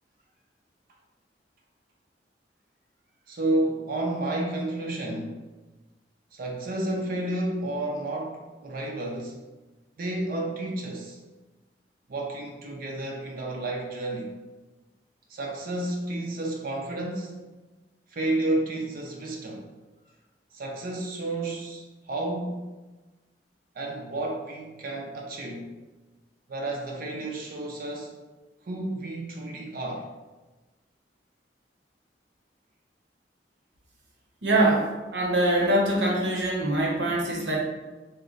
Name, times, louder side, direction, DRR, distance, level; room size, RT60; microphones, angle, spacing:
voice 1, 3.3-5.4 6.3-9.4 10.0-11.2 12.1-14.3 15.3-17.3 18.1-19.7 20.5-22.6 23.7-25.7 26.5-28.1 28.6-30.1, right 1 dB, 55° right, 0 dB, 0.5 m, -31 dB
voice 2, 34.4-37.6, right 1 dB, 75° right, -2 dB, 0.8 m, -23 dB
3.1 x 2.1 x 3.8 m, 1.2 s
head